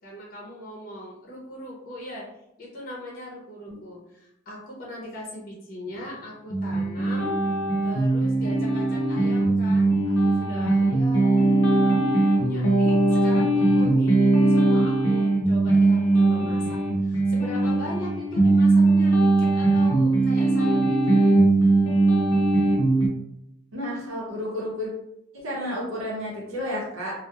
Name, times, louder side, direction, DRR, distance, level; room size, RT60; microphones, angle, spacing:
voice 1, 0.0-2.3 2.6-7.4 7.8-21.2, equal, 45° left, -3 dB, 0.6 m, -39 dB
sound 1, 6.5-23.1, right 2 dB, 80° left, 0.6 m, -20 dB
voice 2, 23.7-24.9 25.3-27.1, left 1 dB, 75° right, -4 dB, 0.7 m, -31 dB
2.7 x 2.0 x 2.3 m, 0.83 s
head